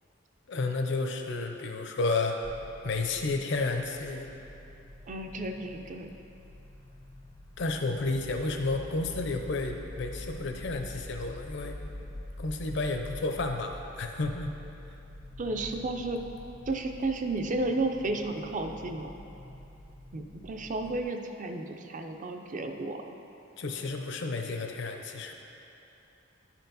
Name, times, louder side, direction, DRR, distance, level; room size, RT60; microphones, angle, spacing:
voice 1, 0.5-2.4 2.8-4.3 7.6-11.8 12.4-14.5 23.6-25.3, left 3 dB, 65° left, 4 dB, 0.6 m, -31 dB
sound 1, 2.4-21.0, left 1 dB, 20° left, 0.4 m, -45 dB
voice 2, 5.1-6.1 15.4-16.2 16.7-19.1 20.1-23.2, right 2 dB, 40° right, 5 dB, 0.5 m, -33 dB
10.5 x 4.5 x 4.0 m, 2.9 s
head